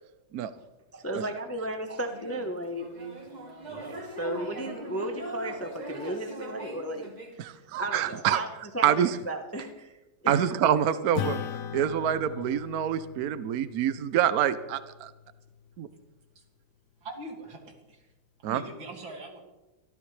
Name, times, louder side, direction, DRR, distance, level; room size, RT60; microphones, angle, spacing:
voice 1, 0.9-2.9 4.2-7.1 7.4-8.5 8.7-10.0 10.2-10.4, right 1 dB, 15° left, 5 dB, 0.6 m, -34 dB
sound 1, 2.0-7.4, right 1 dB, 25° right, 1.7 m, -40 dB
voice 2, 7.4-8.4 8.8-9.1 10.3-11.4 11.7-15.1 15.8-15.9 18.4-18.6, right 10 dB, 65° right, 12 dB, 1.0 m, -26 dB
Acoustic guitar / Strum, 11.1-15.9, left 8 dB, 60° left, 0.9 m, -39 dB
voice 3, 17.0-18.1 18.4-19.4, right 2 dB, 80° right, 2 dB, 3.2 m, -42 dB
24.5 x 13.5 x 3.3 m, 1.0 s
omnidirectional pair, 2.1 m